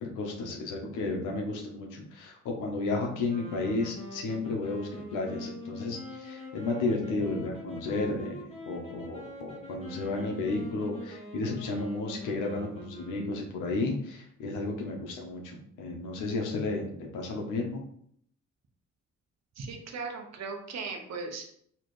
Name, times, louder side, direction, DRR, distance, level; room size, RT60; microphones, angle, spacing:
voice 1, 0.0-17.8, left 3 dB, 90° left, 1 dB, 1.0 m, -33 dB
sound 1, 3.3-13.7, left 1 dB, 20° left, 1.3 m, -44 dB
voice 2, 19.6-21.4, right 4 dB, 60° right, 3 dB, 1.0 m, -37 dB
4.3 x 3.1 x 3.2 m, 0.65 s
cardioid pair, 90°, 30 cm